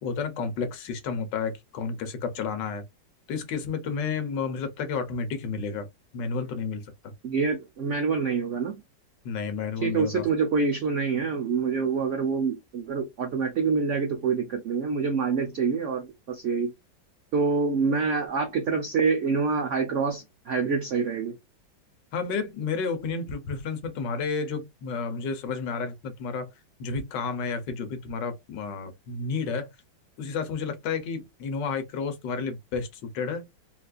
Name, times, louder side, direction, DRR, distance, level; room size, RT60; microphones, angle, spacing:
voice 1, 0.0-2.8 3.3-5.9 6.1-6.8 9.2-10.3 22.1-26.5 26.8-29.7 30.2-33.4, left 5 dB, 75° left, 1.5 m, -31 dB
voice 2, 7.2-8.8 9.8-16.7 17.3-21.4, right 5 dB, 75° right, 0.7 m, -26 dB
4.1 x 2.4 x 2.3 m
omnidirectional pair, 2.0 m